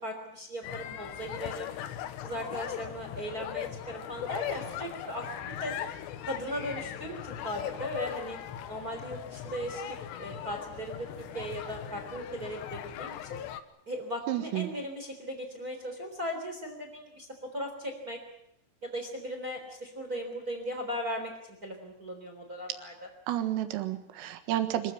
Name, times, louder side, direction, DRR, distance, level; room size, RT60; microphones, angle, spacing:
voice 1, 0.0-1.7 2.2-5.7 6.2-8.4 8.7-13.4 13.9-18.2 18.8-21.3 21.6-23.1, equal, 20° right, 4 dB, 3.3 m, -38 dB
sound 1, 0.6-13.6, left 10 dB, 70° left, 2.9 m, -39 dB
voice 2, 14.3-14.7 23.3-24.9, right 13 dB, 85° right, 9 dB, 4.3 m, -31 dB
25.0 x 16.0 x 9.7 m, 0.77 s
omnidirectional pair, 5.8 m